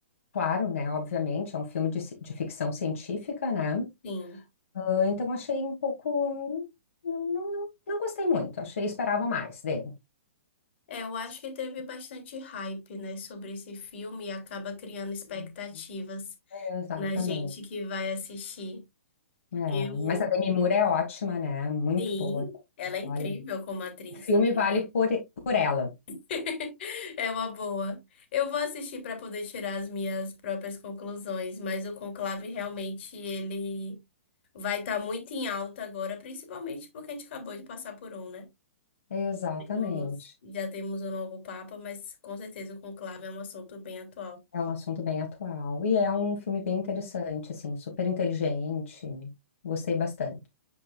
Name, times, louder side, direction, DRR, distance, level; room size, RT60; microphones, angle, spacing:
voice 1, 0.3-3.9 4.7-6.6 7.0-9.9 15.4-15.5 16.5-17.5 19.5-22.4 23.0-23.3 24.2-25.9 39.1-40.3 44.5-49.3 49.6-50.5, left 5 dB, 75° left, 2.4 m, -29 dB
voice 2, 4.0-4.4 10.9-16.7 17.0-18.8 19.7-20.3 22.0-24.3 26.3-34.0 34.5-38.5 39.7-40.1 40.4-44.4, left 4 dB, 55° left, 3.0 m, -35 dB
9.5 x 5.1 x 2.3 m
hypercardioid pair, 130°, 7 cm